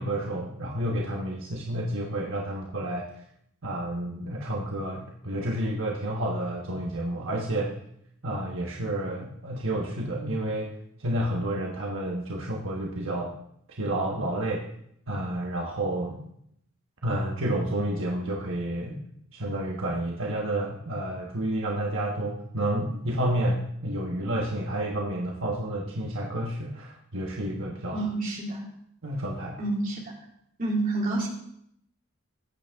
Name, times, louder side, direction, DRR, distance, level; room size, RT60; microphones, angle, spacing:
voice 1, 0.0-3.1 3.6-7.7 8.2-10.7 11.0-13.3 13.8-14.7 15.1-16.2 17.0-19.0 19.3-28.0 29.0-29.6, right 1 dB, 65° right, -1 dB, 1.3 m, -30 dB
voice 2, 27.9-28.6 29.6-30.0 30.6-31.3, right 2 dB, 40° right, -3 dB, 3.1 m, -28 dB
15.0 x 9.2 x 3.6 m, 0.74 s
head